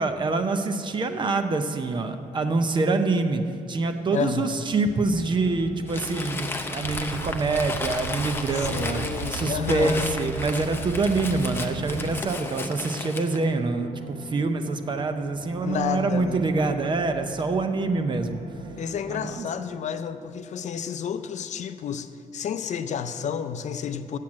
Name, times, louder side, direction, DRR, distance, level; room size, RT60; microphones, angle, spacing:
voice 1, 0.0-3.4 3.7-9.0 9.3-18.4 19.1-19.5, right 3 dB, 35° right, 8 dB, 0.6 m, -25 dB
voice 2, 4.1-4.6 8.6-10.1 15.6-16.4 18.8-24.2, left 7 dB, 55° left, 10 dB, 0.5 m, -31 dB
sound 1, 4.9-19.4, equal, 55° right, 1.7 m, -44 dB
Crumpling crinkling, 5.9-13.5, left 3 dB, 15° left, 0.6 m, -34 dB
sound 2, 6.8-12.2, right 9 dB, 80° right, 0.4 m, -36 dB
7.8 x 7.4 x 8.6 m, 2.5 s
wide cardioid pair, 160°, 14 cm